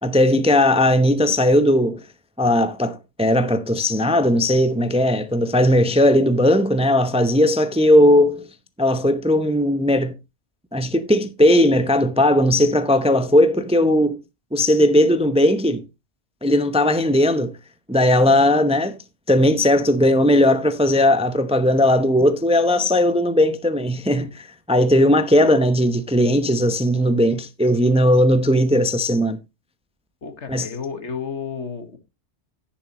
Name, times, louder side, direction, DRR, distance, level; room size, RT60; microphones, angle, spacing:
voice 1, 0.0-2.0 2.4-8.5 8.8-10.2 10.7-14.2 14.5-15.8 16.4-17.5 17.9-18.9 19.3-29.4 30.5-30.7, left 1 dB, 5° right, 0.6 m, -17 dB
voice 2, 30.2-32.0, left 6 dB, 70° left, 1.8 m, -31 dB
10.5 x 10.5 x 3.0 m
omnidirectional pair, 1.2 m